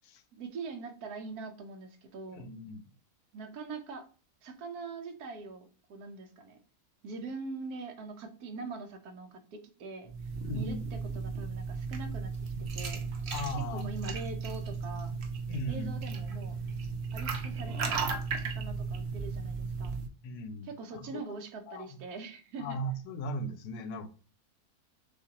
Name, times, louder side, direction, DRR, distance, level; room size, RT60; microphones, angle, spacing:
voice 1, 0.3-2.5 3.3-4.1 4.4-6.6 7.0-10.1 10.5-12.3 12.7-13.0 13.7-15.1 15.7-16.6 17.1-18.0 18.4-19.9 20.7-22.8, right 3 dB, 80° right, 1.3 m, -43 dB
voice 2, 2.3-2.9 10.4-10.8 13.3-13.9 15.5-16.0 20.2-21.2 21.7-22.0 22.6-24.1, equal, 85° left, 1.2 m, -37 dB
sound 1, 10.0-20.1, right 4 dB, 55° right, 0.9 m, -35 dB
6.5 x 2.5 x 2.8 m
omnidirectional pair, 1.6 m